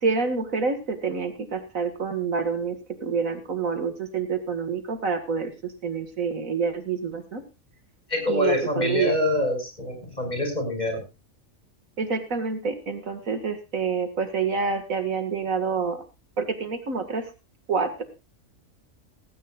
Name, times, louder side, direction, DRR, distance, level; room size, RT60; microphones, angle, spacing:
voice 1, 0.0-7.4 8.3-9.1 12.0-16.0 16.4-17.2 17.7-18.0, right 5 dB, 80° right, 8 dB, 2.3 m, -27 dB
voice 2, 8.1-11.0, left 1 dB, 30° left, 4 dB, 6.2 m, -25 dB
17.5 x 16.5 x 2.4 m, 0.28 s
omnidirectional pair, 1.4 m